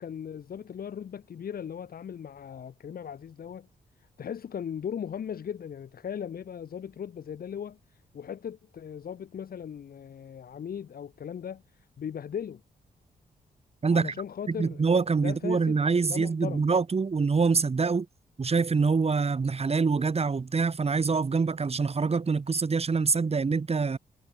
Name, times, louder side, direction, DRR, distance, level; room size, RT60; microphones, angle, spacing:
voice 1, 0.0-3.7 4.2-7.8 8.1-12.6 13.9-14.8 15.2-15.8 16.1-16.6, left 8 dB, 65° left, 2.7 m, -38 dB
voice 2, 13.8-14.1 14.5-18.1 18.4-24.0, right 4 dB, 40° right, 3.3 m, -25 dB
cardioid pair, 85°, 16 cm